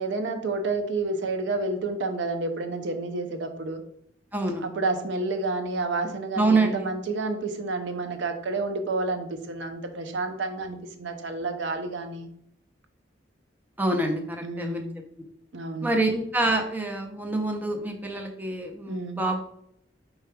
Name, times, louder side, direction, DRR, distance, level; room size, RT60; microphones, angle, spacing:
voice 1, 0.0-3.8 4.6-12.3 14.4-14.9 15.5-15.9 18.9-19.2, right 3 dB, 70° right, 6 dB, 0.6 m, -30 dB
voice 2, 4.3-4.6 6.4-6.9 13.8-14.8 15.8-19.4, right 2 dB, 10° right, 2 dB, 0.6 m, -26 dB
5.0 x 4.5 x 2.2 m, 0.70 s
head